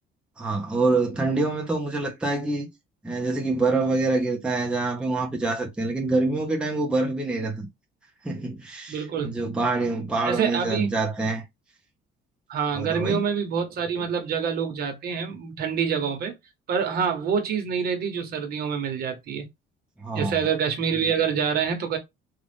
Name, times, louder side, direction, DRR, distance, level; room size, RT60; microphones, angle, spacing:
voice 1, 0.4-2.7 3.0-7.7 8.2-11.4 12.7-13.2 20.0-20.4, right 3 dB, 5° right, 0.7 m, -26 dB
voice 2, 8.9-9.3 10.2-10.9 12.5-16.3 16.7-19.4 20.1-22.0, right 7 dB, 55° right, 1.1 m, -26 dB
3.8 x 2.4 x 3.4 m
cardioid pair, 160°, 19 cm